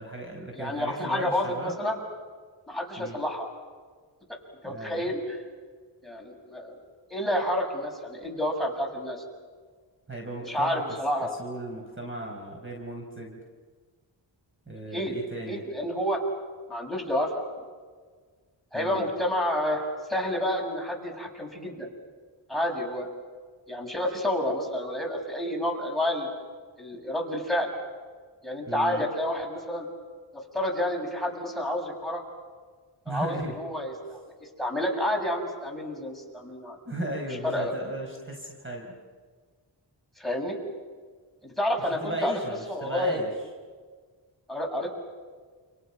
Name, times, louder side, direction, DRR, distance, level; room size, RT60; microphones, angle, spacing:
voice 1, 0.0-1.8 3.0-3.2 4.6-5.1 10.1-10.8 11.4-13.4 14.7-15.6 18.7-19.1 28.7-29.0 33.0-33.6 36.8-39.0 42.0-43.3, right 1 dB, 25° right, 1 dB, 4.8 m, -36 dB
voice 2, 0.5-2.0 2.7-3.5 4.6-5.4 6.0-6.7 7.1-9.2 10.4-11.3 14.9-15.1 15.5-16.2 16.7-17.4 18.7-21.9 22.5-23.1 23.7-26.3 26.8-27.7 28.4-29.8 30.3-32.2 33.1-36.8 37.4-37.7 40.2-40.6 41.4-42.4 42.7-43.2 44.5-44.9, left 1 dB, ahead, 2 dB, 6.5 m, -29 dB
29.5 x 29.0 x 6.0 m, 1.5 s
wide cardioid pair, 75°, 44 cm